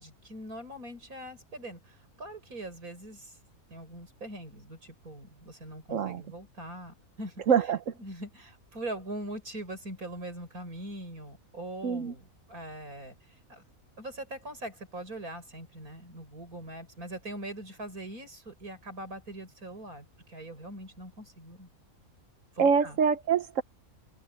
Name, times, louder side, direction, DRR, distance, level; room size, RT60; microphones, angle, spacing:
voice 1, 0.0-3.4 3.7-7.4 8.0-13.6 14.0-21.7 22.6-23.0, right 1 dB, 80° right, 7.1 m, -42 dB
voice 2, 5.9-6.2 7.5-7.8 11.8-12.1 22.6-23.6, right 6 dB, 65° right, 1.2 m, -25 dB
omnidirectional pair, 1.5 m